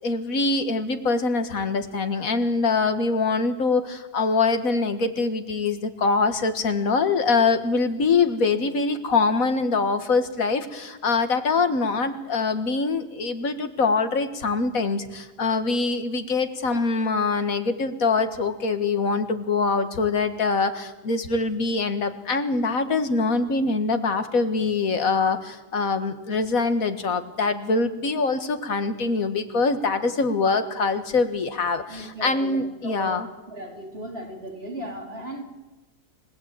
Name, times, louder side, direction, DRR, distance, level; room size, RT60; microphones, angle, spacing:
voice 1, 0.0-33.3, left 4 dB, 90° left, 9 dB, 2.1 m, -24 dB
voice 2, 31.9-33.2 33.5-35.4, right 1 dB, 45° right, 2 dB, 4.1 m, -36 dB
29.0 x 16.5 x 9.0 m, 1.1 s
omnidirectional pair, 1.4 m